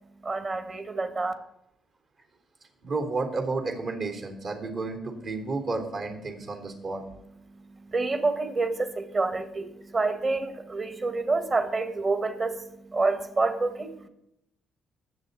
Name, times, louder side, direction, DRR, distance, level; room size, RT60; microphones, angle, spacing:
voice 1, 0.2-1.3 7.4-14.1, right 3 dB, 40° right, 8 dB, 1.8 m, -28 dB
voice 2, 2.8-7.0, right 3 dB, 60° right, 3 dB, 3.3 m, -31 dB
20.0 x 7.3 x 4.1 m, 0.80 s
cardioid pair, 90°, 0 cm